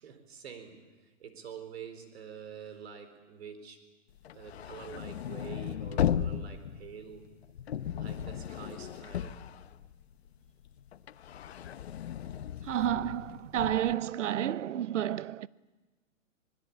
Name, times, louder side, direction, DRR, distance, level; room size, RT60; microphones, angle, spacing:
voice 1, 0.0-3.8 4.3-7.3 7.9-9.4, right 7 dB, 55° right, 4.4 m, -47 dB
sound 1, 4.2-10.3 10.6-13.9, left 9 dB, 55° left, 1.0 m, -36 dB
voice 2, 12.6-15.5, right 11 dB, 70° right, 0.8 m, -30 dB
24.5 x 21.5 x 8.7 m
hypercardioid pair, 170°, 38 cm